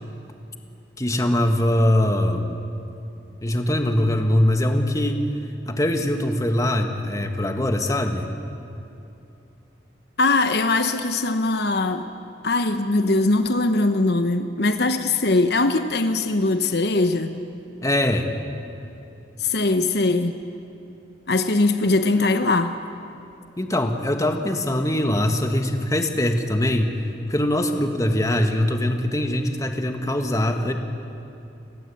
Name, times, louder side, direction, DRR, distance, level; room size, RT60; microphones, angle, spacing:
voice 1, 1.0-2.6 3.4-5.2 5.6-8.3 17.8-18.3 23.6-27.0 27.3-30.7, left 1 dB, 20° left, 5 dB, 1.7 m, -22 dB
voice 2, 10.2-12.1 12.4-17.4 19.4-20.4 21.3-22.8, left 2 dB, 65° left, 8 dB, 1.1 m, -21 dB
30.0 x 18.0 x 8.6 m, 2.8 s
head